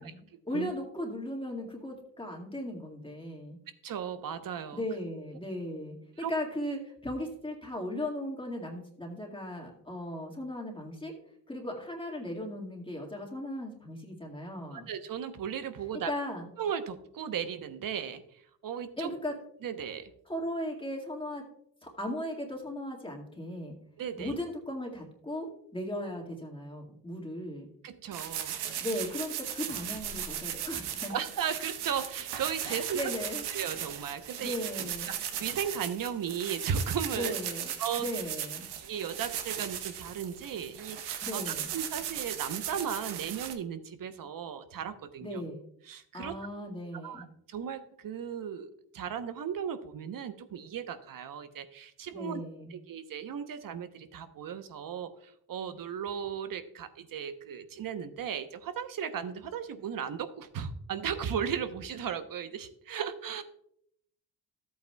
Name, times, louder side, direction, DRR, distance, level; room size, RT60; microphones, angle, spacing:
voice 1, 0.0-3.6 4.7-6.0 6.3-11.2 11.5-14.9 16.1-16.5 19.0-19.4 20.3-21.5 21.8-23.7 24.2-27.7 28.8-31.2 32.6-33.4 34.4-35.1 37.1-37.7 38.0-38.7 41.2-41.7 45.2-45.6 46.1-47.2 52.1-52.7, left 1 dB, 15° left, -1 dB, 1.9 m, -37 dB
voice 2, 3.8-4.8 6.2-6.3 14.7-16.1 16.6-18.2 18.6-19.1 19.6-20.1 24.0-24.3 27.8-28.6 31.1-33.0 33.5-34.6 35.4-37.3 37.8-38.1 38.7-45.4 45.9-46.3 47.0-52.4 52.7-63.4, right 8 dB, 60° right, 10 dB, 1.0 m, -36 dB
sound 1, 28.1-43.5, right 9 dB, 85° right, 1.0 m, -37 dB
13.5 x 8.5 x 2.3 m, 0.70 s
cardioid pair, 90°, 38 cm